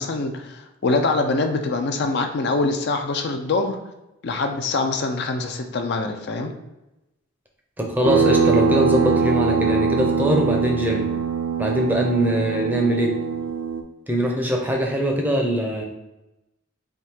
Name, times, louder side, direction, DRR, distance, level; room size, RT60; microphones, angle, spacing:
voice 1, 0.0-3.8 4.2-6.5, left 3 dB, 55° left, 5 dB, 0.4 m, -24 dB
voice 2, 7.8-11.1 11.6-13.2 14.1-15.8, equal, 10° right, 0 dB, 0.5 m, -22 dB
sound 1, 8.0-13.8, right 5 dB, 80° right, 0.5 m, -22 dB
3.6 x 2.7 x 4.3 m, 0.95 s
head